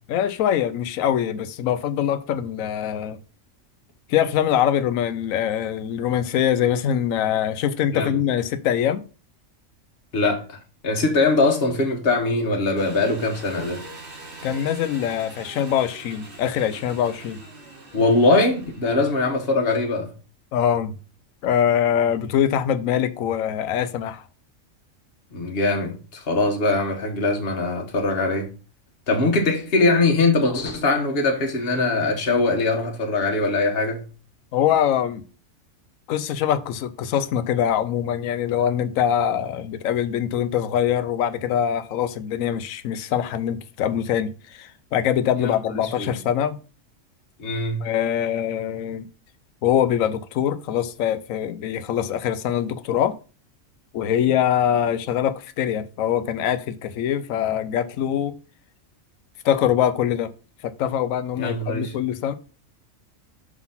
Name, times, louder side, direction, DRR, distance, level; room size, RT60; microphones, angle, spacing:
voice 1, 0.1-3.2 4.1-9.0 14.4-17.4 20.5-20.9 21.4-24.2 34.5-35.2 36.1-46.6 47.8-49.1 49.6-53.1 53.9-58.3 59.4-60.3 60.6-62.3, left 9 dB, 80° left, 1.0 m, -23 dB
voice 2, 10.1-10.6 10.8-13.8 17.9-20.1 25.3-28.5 29.1-34.0 45.4-45.5 46.0-46.2 47.4-47.9 61.4-61.9, left 2 dB, 50° left, 1.5 m, -22 dB
Engine, 12.8-19.3, right 2 dB, 45° right, 1.7 m, -42 dB
6.0 x 4.0 x 5.6 m
omnidirectional pair, 1.4 m